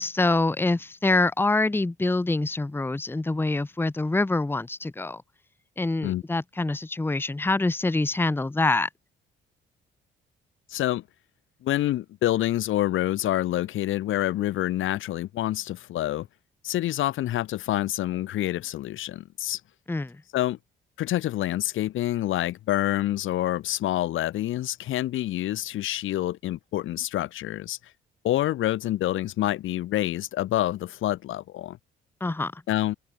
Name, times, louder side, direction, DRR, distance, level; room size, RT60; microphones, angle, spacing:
voice 1, 0.0-5.2 5.8-8.9 19.9-20.1 32.2-32.6, left 2 dB, 10° left, 0.9 m, -25 dB
voice 2, 10.7-11.0 11.6-16.3 16.6-19.6 20.3-20.6 21.0-27.8 28.2-31.8 32.7-32.9, left 14 dB, 85° left, 5.6 m, -27 dB
open air
cardioid pair, 90°, 20 cm